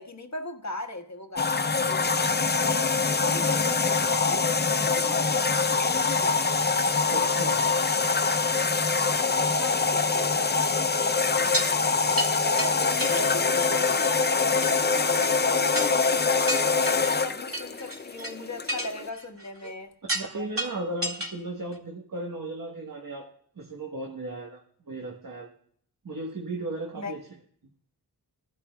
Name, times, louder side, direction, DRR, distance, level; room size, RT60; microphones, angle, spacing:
voice 1, 0.0-2.2 2.6-6.6 8.9-10.7 12.4-19.9 26.9-27.1, left 1 dB, 45° left, 1.5 m, -37 dB
sound 1, 1.4-19.1, left 4 dB, 25° left, 0.5 m, -24 dB
voice 2, 7.1-7.6 19.6-19.7 20.1-24.6 24.9-25.5 26.0-27.2, right 2 dB, 55° right, 1.3 m, -35 dB
sound 2, 11.4-11.7 12.2-12.3 12.6-12.7 13.0-13.7 14.0-14.2 14.6-14.7 15.2-15.3 15.7-16.1 16.5-17.1 17.5-18.3 18.7-19.7 20.1-20.3 20.6-21.3 21.7-21.8, right 1 dB, 35° right, 2.5 m, -31 dB
20.5 x 11.5 x 2.3 m
wide cardioid pair, 45°, 39 cm